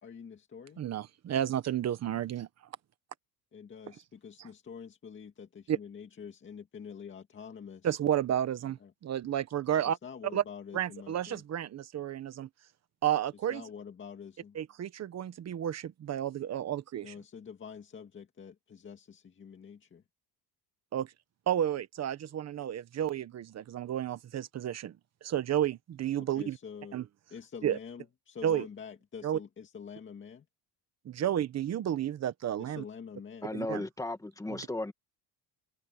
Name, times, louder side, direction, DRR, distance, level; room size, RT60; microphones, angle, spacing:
voice 1, 0.0-0.8 3.5-8.0 8.8-8.9 9.8-11.4 13.5-14.6 17.0-20.0 26.2-27.0 27.3-30.5 32.6-33.5, left 6 dB, 25° left, 2.1 m, -46 dB
voice 2, 0.8-2.5 4.4-4.5 5.7-5.8 7.8-10.0 10.3-10.4 10.7-12.5 13.0-13.6 14.5-17.1 20.9-21.1 21.5-24.9 25.2-26.6 26.9-27.0 27.6-27.8 28.4-28.7 29.2-29.4 31.0-32.8 33.5-33.8, right 10 dB, 35° right, 1.2 m, -31 dB
voice 3, 33.4-34.9, left 2 dB, 10° left, 2.1 m, -35 dB
cardioid pair, 155°, 43 cm